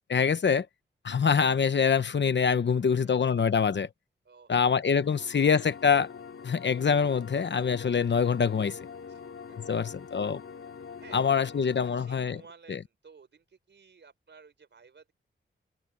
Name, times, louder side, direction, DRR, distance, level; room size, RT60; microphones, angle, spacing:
voice 1, 0.1-0.7 1.0-3.9 4.5-6.1 6.4-8.8 9.7-10.4 11.1-12.4 12.7-12.8, left 6 dB, 60° left, 0.9 m, -25 dB
voice 2, 4.2-4.7 9.1-9.9 11.0-15.1, right 5 dB, 60° right, 4.8 m, -55 dB
sound 1, 4.7-12.5, left 6 dB, 80° left, 3.2 m, -45 dB
wide cardioid pair, 145°, 21 cm